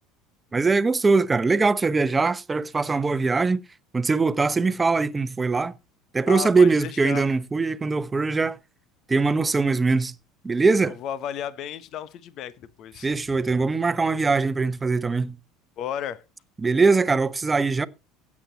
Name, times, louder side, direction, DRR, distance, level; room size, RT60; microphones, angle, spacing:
voice 1, 0.5-3.6 3.9-5.7 6.1-8.6 9.1-10.1 10.4-11.0 13.0-15.4 16.6-17.9, right 4 dB, 20° right, 1.0 m, -22 dB
voice 2, 6.3-7.2 10.9-13.1 15.8-16.2, left 9 dB, 50° left, 1.1 m, -33 dB
16.0 x 8.6 x 4.1 m
hypercardioid pair, 70°, 0 cm